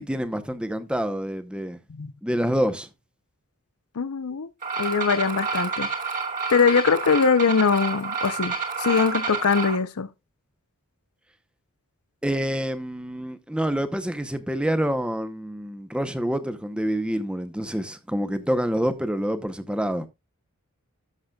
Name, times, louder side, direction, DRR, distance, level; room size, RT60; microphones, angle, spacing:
voice 1, 0.0-1.8 2.2-2.9 12.2-20.1, equal, 5° right, 0.7 m, -27 dB
voice 2, 4.0-4.5 4.8-5.9 6.5-10.1, left 5 dB, 85° left, 0.6 m, -22 dB
sound 1, 4.6-9.8, right 5 dB, 40° right, 2.4 m, -29 dB
13.0 x 6.6 x 2.3 m
head